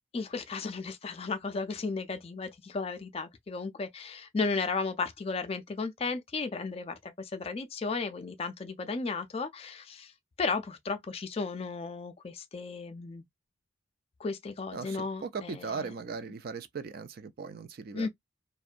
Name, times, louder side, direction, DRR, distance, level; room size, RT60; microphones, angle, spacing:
voice 1, 0.1-13.2 14.2-15.9 17.9-18.1, left 4 dB, 30° left, 0.4 m, -34 dB
voice 2, 14.7-18.1, right 5 dB, 50° right, 0.4 m, -38 dB
2.6 x 2.1 x 2.4 m
head